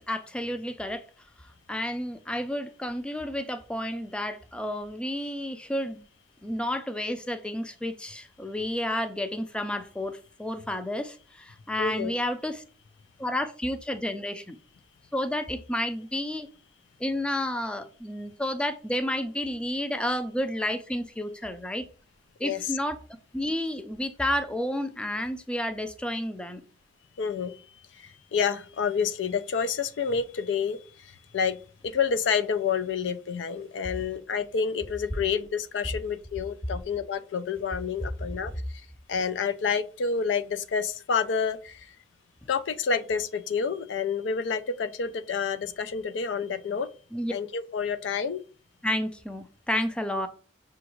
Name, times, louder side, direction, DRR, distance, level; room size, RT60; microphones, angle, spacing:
voice 1, 0.1-1.0 1.7-6.0 6.4-12.6 13.2-14.6 15.1-16.5 17.0-21.9 22.4-23.0 23.3-26.6 47.1-47.3 48.8-50.3, left 1 dB, 5° left, 0.3 m, -31 dB
voice 2, 11.8-12.1 22.4-22.7 27.2-27.6 27.9-31.6 31.8-38.5 39.1-41.9 42.5-46.9 47.3-48.4, left 6 dB, 85° left, 0.4 m, -29 dB
6.0 x 2.4 x 3.0 m
head